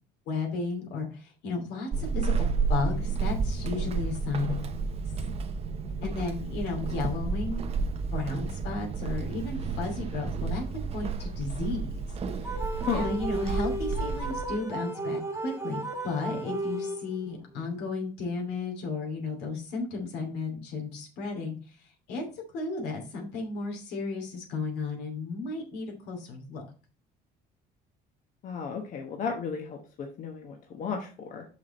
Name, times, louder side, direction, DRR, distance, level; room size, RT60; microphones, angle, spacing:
voice 1, 0.3-4.6 6.0-7.6 8.1-11.9 12.4-12.5 12.9-21.6 22.1-22.2 22.5-26.6, left 3 dB, 80° left, 1 dB, 2.7 m, -34 dB
Walk footsteps / Squeak, 1.9-14.6, right 4 dB, 35° right, 0.8 m, -31 dB
sound 1, 12.4-17.3, right 2 dB, 15° right, 1.3 m, -34 dB
voice 2, 28.4-31.5, left 6 dB, 50° left, 3 dB, 1.1 m, -34 dB
6.1 x 5.8 x 4.2 m, 0.37 s
cardioid pair, 135°, 17 cm